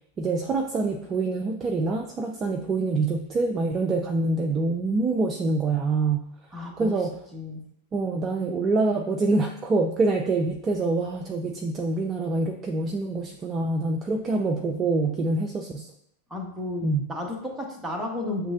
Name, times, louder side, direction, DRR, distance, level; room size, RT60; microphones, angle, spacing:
voice 1, 0.2-6.2 6.8-7.1 7.9-15.9 16.8-17.0, right 3 dB, 25° right, 3 dB, 0.4 m, -25 dB
voice 2, 6.5-7.0 7.3-7.6 16.3-18.5, left 2 dB, 10° right, 1 dB, 1.0 m, -33 dB
7.0 x 3.1 x 2.4 m, 0.72 s
figure-of-eight pair, 90°, 0 cm